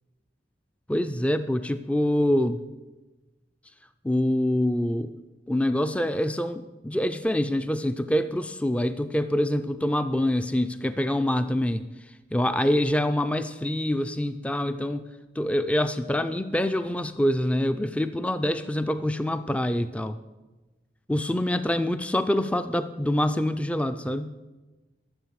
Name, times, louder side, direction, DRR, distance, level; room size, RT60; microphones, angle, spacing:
voice 1, 0.9-2.6 4.0-5.1 5.5-11.8 12.3-15.1 15.4-20.2 21.1-24.3, left 1 dB, 5° left, 11 dB, 0.4 m, -25 dB
12.5 x 7.6 x 7.4 m, 1.1 s
head